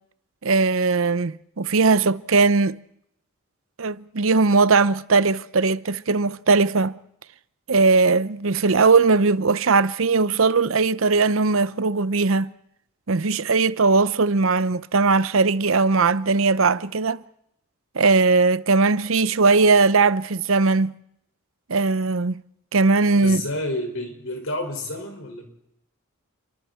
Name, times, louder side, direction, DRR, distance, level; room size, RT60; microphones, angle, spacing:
voice 1, 0.4-2.8 3.8-7.0 7.7-12.5 13.1-17.2 17.9-21.0 21.7-22.4 22.7-23.4, right 4 dB, 70° right, 0.7 m, -19 dB
voice 2, 23.1-25.5, left 1 dB, 70° left, 5.9 m, -30 dB
30.0 x 24.0 x 4.5 m
head